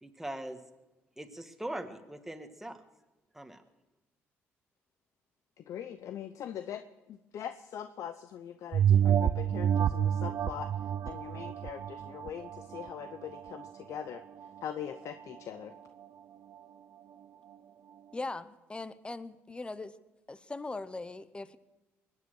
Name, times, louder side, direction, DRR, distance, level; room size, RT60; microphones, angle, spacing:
voice 1, 0.0-0.6 1.2-2.8 3.3-3.6, right 1 dB, 5° right, 6 dB, 1.7 m, -41 dB
voice 2, 5.7-6.8 7.1-10.7 11.1-14.2 14.6-15.7, left 9 dB, 65° left, 10 dB, 0.7 m, -41 dB
sound 1, 8.7-13.7 14.1-14.2, right 9 dB, 55° right, 0.6 m, -28 dB
voice 3, 18.1-19.9 20.3-21.6, left 3 dB, 20° left, 15 dB, 0.8 m, -40 dB
22.0 x 9.6 x 6.3 m, 1.1 s
cardioid pair, 80°, 6 cm